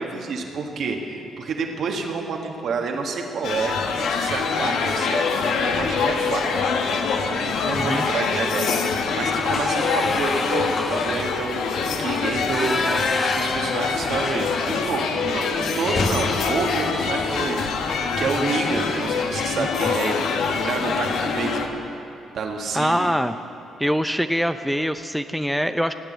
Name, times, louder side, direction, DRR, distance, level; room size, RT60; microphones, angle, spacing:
voice 1, 0.0-11.7 12.0-17.6 17.9-20.2 20.6-21.8 22.3-23.1, right 4 dB, 65° right, 2 dB, 1.6 m, -29 dB
sound 1, 3.4-21.7, left 5 dB, 70° left, 1.1 m, -25 dB
sound 2, 7.7-8.1 8.4-8.6 9.0-15.0 15.3-15.4 15.8-18.0 19.3-19.6 20.0-20.1 20.4-21.0, left 3 dB, 40° left, 1.4 m, -30 dB
voice 2, 7.7-8.0 18.4-18.5 19.6-19.9 22.7-23.4 23.8-25.9, equal, ahead, 9 dB, 0.6 m, -24 dB
16.5 x 9.0 x 6.8 m, 2.8 s
hypercardioid pair, 45°, 0 cm